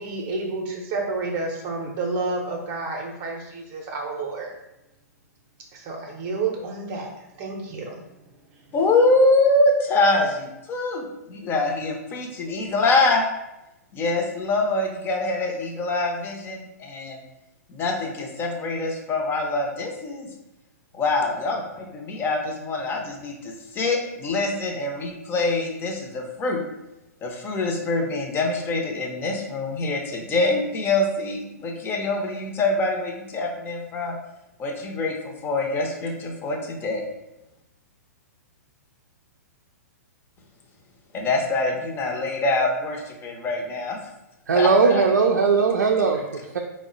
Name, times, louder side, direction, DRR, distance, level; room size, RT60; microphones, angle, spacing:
voice 1, 0.0-4.5 5.7-8.0 8.5-8.6, right 3 dB, 35° right, -1 dB, 0.6 m, -30 dB
voice 2, 8.7-13.2 13.9-17.2 17.7-20.3 20.9-26.6 27.2-34.2 34.6-37.0 41.1-44.0 44.5-45.0, left 2 dB, 25° left, 1 dB, 0.6 m, -24 dB
voice 3, 44.5-46.6, right 5 dB, 80° right, 1 dB, 0.4 m, -19 dB
3.5 x 2.1 x 3.8 m, 0.93 s
hypercardioid pair, 120°, 9 cm